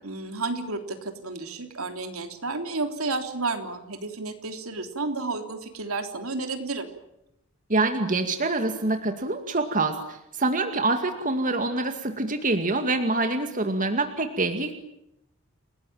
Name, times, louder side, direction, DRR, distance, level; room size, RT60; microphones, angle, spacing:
voice 1, 0.0-6.9, right 3 dB, 75° right, 6 dB, 3.5 m, -31 dB
voice 2, 7.7-14.7, right 2 dB, 35° right, 6 dB, 2.2 m, -25 dB
30.0 x 19.0 x 9.0 m, 0.82 s
head